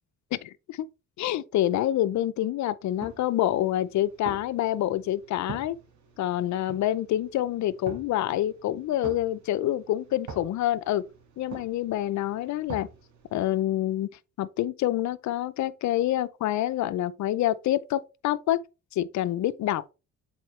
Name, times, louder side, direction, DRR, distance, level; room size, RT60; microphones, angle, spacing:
voice 1, 0.3-0.9 1.2-5.8 6.2-11.1 11.4-12.9 13.3-14.1 14.4-18.6 18.9-19.9, left 13 dB, 70° left, 0.6 m, -27 dB
sound 1, 2.9-13.6, right 5 dB, 70° right, 2.2 m, -46 dB
7.6 x 4.3 x 3.2 m
cardioid pair, 90°, 30 cm